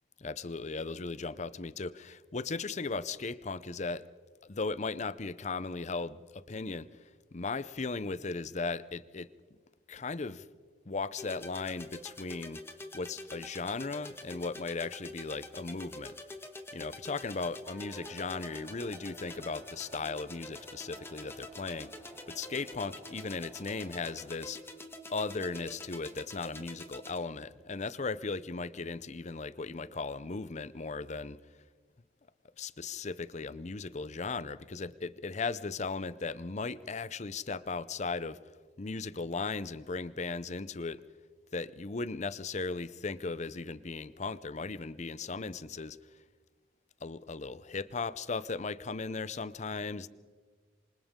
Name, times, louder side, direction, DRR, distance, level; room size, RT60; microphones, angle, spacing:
voice 1, 0.2-4.0 4.5-6.9 7.3-9.3 9.9-10.5 10.9-12.6 12.9-16.1 16.7-21.9 22.3-24.6 25.1-31.4 32.6-38.4 38.8-41.0 41.5-46.0 47.0-50.1, left 4 dB, 40° left, 17 dB, 0.7 m, -37 dB
sound 1, 11.2-27.2, left 2 dB, 15° left, 1.6 m, -47 dB
sound 2, 17.6-24.4, right 1 dB, 30° right, 6.2 m, -55 dB
27.5 x 25.0 x 3.7 m, 1.5 s
head